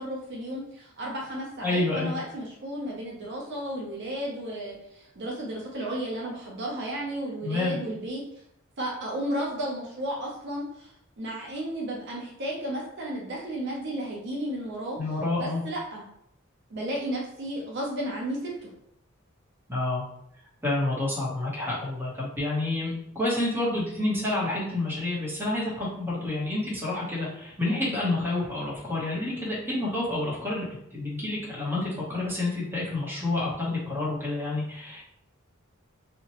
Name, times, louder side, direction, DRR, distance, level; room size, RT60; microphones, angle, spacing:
voice 1, 0.0-8.2 8.8-15.0 15.4-16.1 16.7-18.7, right 1 dB, 55° right, -3 dB, 0.6 m, -33 dB
voice 2, 1.6-2.1 7.4-7.8 15.0-15.6 19.7-20.0 20.6-35.0, left 2 dB, 10° right, -6 dB, 0.9 m, -29 dB
2.8 x 2.1 x 2.8 m, 0.73 s
head